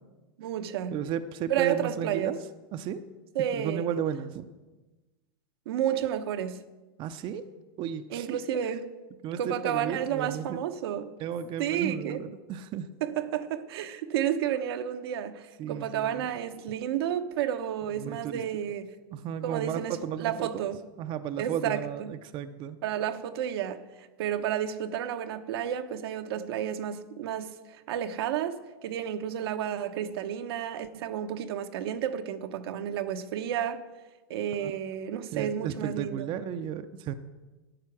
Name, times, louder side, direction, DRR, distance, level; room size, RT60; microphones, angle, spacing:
voice 1, 0.4-1.0 1.5-2.3 3.3-3.9 5.7-6.6 8.1-8.9 9.4-11.1 11.6-12.2 13.0-18.9 19.4-20.8 21.4-22.1 22.8-33.8 34.3-36.3, right 10 dB, 75° right, 0.9 m, -31 dB
voice 2, 0.9-2.4 2.7-3.0 3.5-4.5 7.0-7.4 7.8-8.4 9.2-10.6 11.2-12.9 15.6-16.3 18.0-18.4 19.1-20.6 21.0-22.8 34.6-34.7 35.1-37.1, right 8 dB, 40° right, 0.6 m, -34 dB
12.5 x 8.8 x 6.0 m
supercardioid pair, 125°, 13 cm